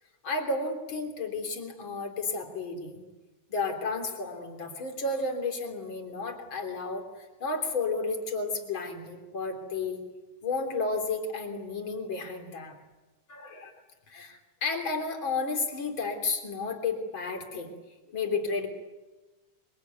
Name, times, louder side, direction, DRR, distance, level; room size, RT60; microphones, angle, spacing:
voice 1, 0.2-3.0 3.5-10.0 10.4-12.7 13.3-13.7 14.1-17.7 18.1-18.7, left 3 dB, 40° left, 4 dB, 3.9 m, -32 dB
25.5 x 23.5 x 9.5 m, 1.2 s
omnidirectional pair, 3.7 m